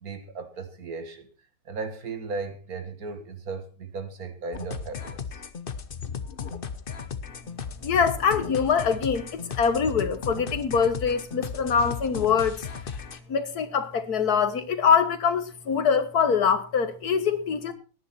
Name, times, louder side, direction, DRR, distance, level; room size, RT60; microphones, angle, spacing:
voice 1, 0.0-1.3 1.7-5.4, right 4 dB, 65° right, 9 dB, 2.2 m, -36 dB
sound 1, 4.5-13.2, left 6 dB, 40° left, 1.0 m, -36 dB
voice 2, 7.8-12.6 13.3-17.7, left 6 dB, 75° left, 11 dB, 1.9 m, -24 dB
18.0 x 10.0 x 4.3 m, 0.36 s
omnidirectional pair, 1.7 m